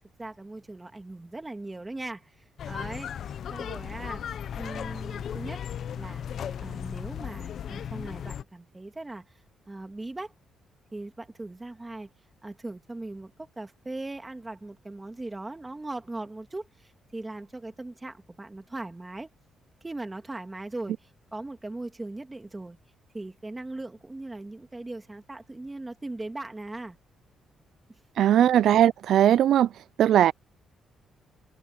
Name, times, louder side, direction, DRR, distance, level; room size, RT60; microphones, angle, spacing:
voice 1, 0.2-4.2 4.5-5.6 6.0-6.3 6.6-9.3 9.7-10.3 10.9-12.1 12.4-19.3 19.8-22.8 23.1-27.0 27.9-28.4, right 2 dB, 15° right, 2.6 m, -39 dB
sound 1, 2.6-8.4, left 8 dB, 55° left, 1.1 m, -36 dB
voice 2, 28.2-29.7 30.0-30.3, right 11 dB, 70° right, 0.4 m, -19 dB
cardioid pair, 140°, 0 cm